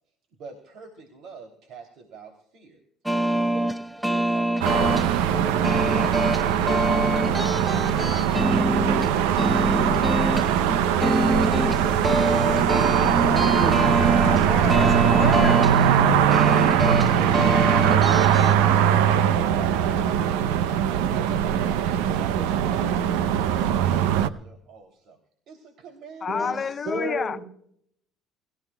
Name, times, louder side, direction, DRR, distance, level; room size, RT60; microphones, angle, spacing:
voice 1, 0.4-2.8 3.3-5.1 10.8-11.7 21.1-23.1 23.3-25.2 25.5-26.6, right 4 dB, 65° right, 3.0 m, -45 dB
sound 1, 3.1-18.6, right 1 dB, 5° right, 0.7 m, -26 dB
sound 2, 4.6-24.3, right 9 dB, 85° right, 0.7 m, -21 dB
voice 2, 12.6-14.0 26.3-26.6 26.8-27.4, right 1 dB, 40° right, 5.6 m, -32 dB
voice 3, 14.1-15.8 26.2-27.4, left 6 dB, 35° left, 0.6 m, -29 dB
28.5 x 15.0 x 2.3 m
supercardioid pair, 90°, 0 cm